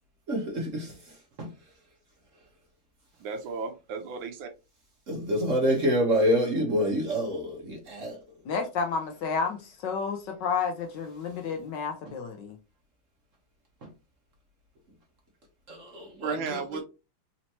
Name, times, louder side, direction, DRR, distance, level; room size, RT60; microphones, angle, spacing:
voice 1, 0.3-1.0 1.4-1.5 5.1-8.2 15.7-16.8, equal, 50° right, 1.1 m, -27 dB
voice 2, 3.2-4.5 16.2-16.8, right 5 dB, 75° right, 1.4 m, -34 dB
voice 3, 8.4-12.6, left 5 dB, 65° left, 1.2 m, -31 dB
4.3 x 2.8 x 2.8 m
omnidirectional pair, 2.3 m